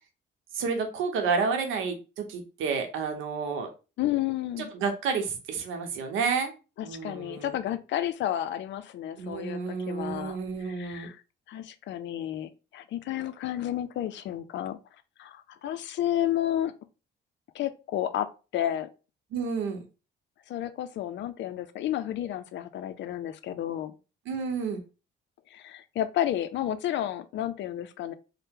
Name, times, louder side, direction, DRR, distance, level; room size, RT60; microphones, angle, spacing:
voice 1, 0.5-3.7 4.7-6.5 6.8-7.5 9.2-11.1 19.3-19.8 24.3-24.8, right 5 dB, 90° right, 0.7 m, -30 dB
voice 2, 4.0-4.7 6.8-10.4 10.6-11.2 11.5-14.8 15.2-16.7 17.5-18.9 20.5-23.9 25.5-28.1, left 12 dB, 65° left, 0.4 m, -31 dB
2.8 x 2.1 x 3.5 m
cardioid pair, 90°, 20 cm